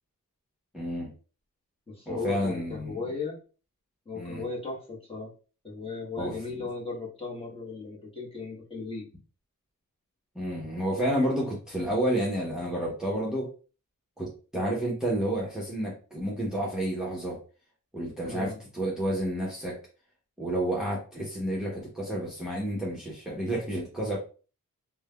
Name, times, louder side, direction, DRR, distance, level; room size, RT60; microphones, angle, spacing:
voice 1, 0.7-1.1 2.1-2.9 4.1-4.4 6.2-6.4 10.3-13.5 14.2-17.4 17.9-19.8 20.4-24.2, right 1 dB, ahead, -4 dB, 0.9 m, -30 dB
voice 2, 1.9-3.4 4.0-5.3 5.6-9.1 18.2-18.6, left 4 dB, 15° left, -4 dB, 1.2 m, -36 dB
3.2 x 2.2 x 2.2 m, 0.36 s
cardioid pair, 75°, 34 cm